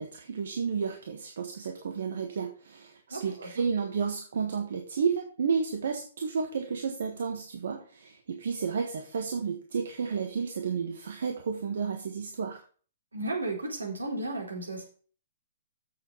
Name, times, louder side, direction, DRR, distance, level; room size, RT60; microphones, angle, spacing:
voice 1, 0.0-12.6, right 6 dB, 65° right, 3 dB, 1.4 m, -32 dB
voice 2, 3.1-3.5 13.1-14.8, right 2 dB, 90° right, -1 dB, 4.0 m, -34 dB
7.5 x 6.9 x 5.6 m, 0.42 s
figure-of-eight pair, 120°, 0 cm